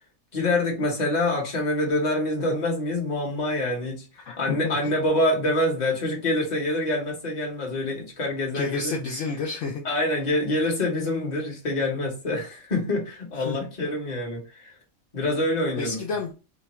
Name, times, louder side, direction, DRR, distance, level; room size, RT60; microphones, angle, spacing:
voice 1, 0.3-4.1 4.4-9.0 9.8-14.7 15.1-16.0, left 1 dB, 35° left, 1.0 m, -26 dB
voice 2, 4.2-5.0 8.5-9.8 13.3-13.6 15.7-16.3, left 4 dB, 65° left, 0.8 m, -30 dB
2.9 x 2.3 x 4.1 m
omnidirectional pair, 1.5 m